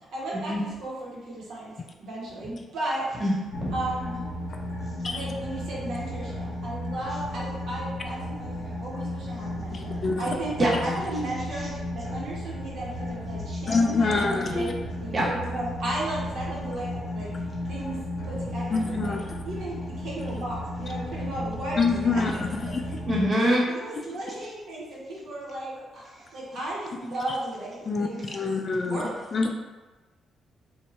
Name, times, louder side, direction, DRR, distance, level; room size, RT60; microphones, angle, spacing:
voice 1, 0.1-1.7 2.0-3.1 3.7-4.2 5.1-11.7 11.9-14.7 15.2-17.3 17.7-19.2 19.4-22.2 23.1-23.3 23.7-28.5 28.8-29.2, right 1 dB, 75° right, -5 dB, 0.8 m, -35 dB
voice 2, 3.2-3.7 10.6-10.7 15.1-15.2 23.1-23.6, equal, 35° right, -5 dB, 1.0 m, -23 dB
sound 1, 3.5-23.3, left 1 dB, 85° left, 0.7 m, -34 dB
voice 3, 9.7-10.3 10.8-11.0 13.7-14.7 18.7-19.4 21.8-22.8 23.9-24.0 27.9-29.0 29.3-29.5, left 4 dB, 45° left, 3 dB, 0.3 m, -26 dB
2.6 x 2.2 x 3.0 m, 1.2 s
cardioid pair, 75°, 0 cm